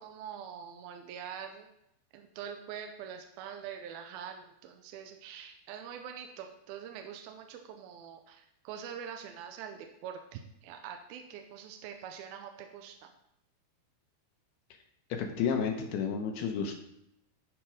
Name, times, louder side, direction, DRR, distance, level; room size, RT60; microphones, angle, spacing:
voice 1, 0.0-1.7 2.1-13.1, right 8 dB, 80° right, 4 dB, 2.3 m, -44 dB
voice 2, 15.1-16.7, left 6 dB, 75° left, 3 dB, 2.7 m, -31 dB
12.0 x 4.4 x 5.1 m, 0.79 s
omnidirectional pair, 4.9 m